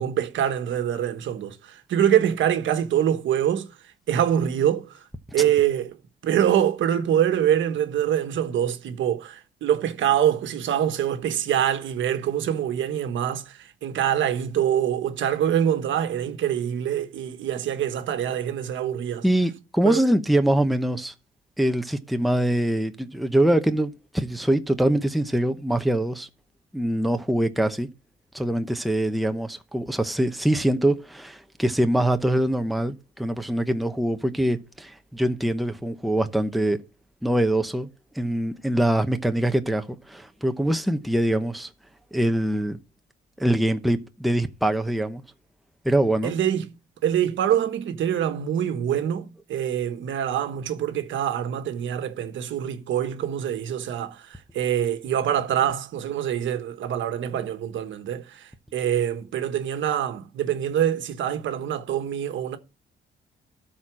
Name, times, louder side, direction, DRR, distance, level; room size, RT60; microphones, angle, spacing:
voice 1, 0.0-3.7 4.1-5.1 5.3-6.0 6.2-19.2 19.8-20.0 46.2-46.7 47.0-62.6, right 10 dB, 75° right, 1.3 m, -25 dB
voice 2, 19.2-21.1 21.6-26.3 26.7-27.9 28.3-36.8 37.2-37.9 38.1-41.7 42.1-42.8 43.4-45.2 45.8-46.3, right 1 dB, ahead, 0.8 m, -23 dB
12.5 x 4.3 x 6.2 m
cardioid pair, 90°, 20 cm